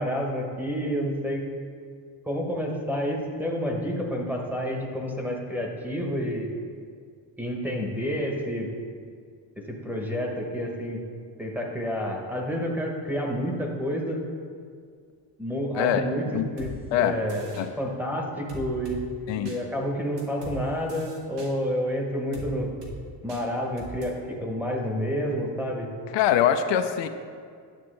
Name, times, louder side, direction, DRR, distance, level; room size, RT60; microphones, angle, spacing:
voice 1, 0.0-1.4 2.3-6.5 7.4-8.7 9.6-11.0 11.4-14.2 15.4-16.7 17.0-17.5 17.8-19.1 19.3-22.7 23.2-25.9, equal, 5° right, -1 dB, 0.9 m, -29 dB
sound 1, 16.6-16.7 17.3-17.7 18.5-19.0 19.5-19.6 20.2-20.6 20.9-21.5 22.3-22.5 22.8-23.0 23.3-23.4 23.8-24.1, right 3 dB, 65° right, 1.6 m, -40 dB
voice 2, 26.1-27.1, left 10 dB, 75° left, 8 dB, 0.6 m, -23 dB
10.5 x 6.8 x 3.2 m, 2.1 s
cardioid pair, 130°, 44 cm